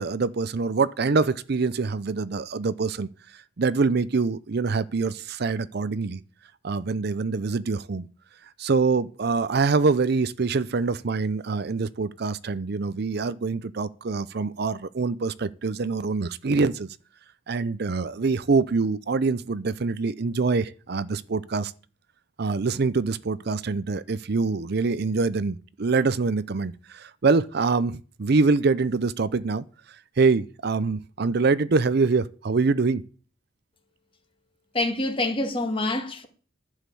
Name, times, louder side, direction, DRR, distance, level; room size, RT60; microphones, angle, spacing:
voice 1, 0.0-3.1 3.3-6.2 6.6-8.1 8.6-17.0 17.5-21.7 22.4-29.6 30.2-33.0, right 4 dB, 55° right, 0.5 m, -25 dB
voice 2, 34.7-36.3, left 2 dB, 30° left, 2.1 m, -26 dB
11.5 x 6.5 x 8.3 m
head